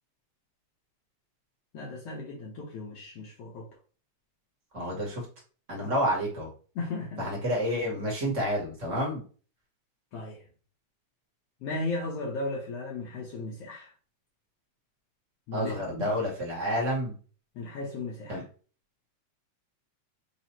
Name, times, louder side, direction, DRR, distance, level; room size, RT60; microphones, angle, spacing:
voice 1, 1.7-3.7 5.8-5.9 6.7-7.3 10.1-10.4 11.6-13.9 15.5-16.1 17.5-18.5, left 2 dB, 70° left, 1.5 m, -36 dB
voice 2, 4.7-5.2 5.7-6.5 7.2-9.2 15.5-17.1 18.3-18.4, equal, 45° right, 0.9 m, -29 dB
4.9 x 2.0 x 4.3 m
omnidirectional pair, 3.6 m